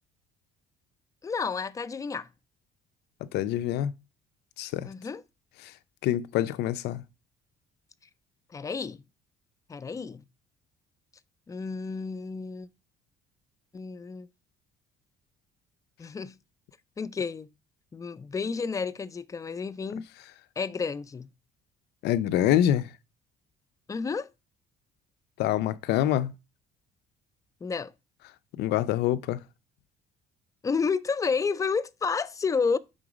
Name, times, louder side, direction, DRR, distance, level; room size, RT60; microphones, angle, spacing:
voice 1, 1.2-2.3 4.8-5.2 8.5-9.0 9.7-10.2 11.5-12.7 13.7-14.3 16.0-16.4 17.0-17.5 17.9-20.1 20.6-21.3 23.9-24.3 27.6-27.9 30.6-32.8, left 5 dB, 20° left, 0.4 m, -30 dB
voice 2, 3.3-3.9 4.6-4.9 5.6-5.7 6.0-7.0 22.0-22.9 25.4-26.3 28.6-29.4, left 12 dB, 80° left, 0.4 m, -26 dB
5.1 x 3.8 x 4.9 m
cardioid pair, 110°, 17 cm